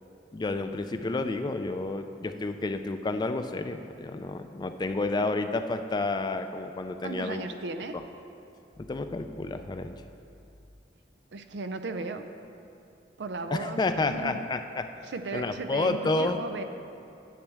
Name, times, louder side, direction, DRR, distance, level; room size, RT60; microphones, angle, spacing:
voice 1, 0.3-7.4 7.9-8.0 8.8-9.9 13.5-14.9 15.3-16.4, left 2 dB, 25° left, 8 dB, 0.3 m, -30 dB
voice 2, 7.0-8.0 11.3-12.2 13.2-14.4 15.1-16.6, right 3 dB, 80° right, 8 dB, 0.5 m, -35 dB
10.0 x 8.0 x 3.4 m, 2.8 s
head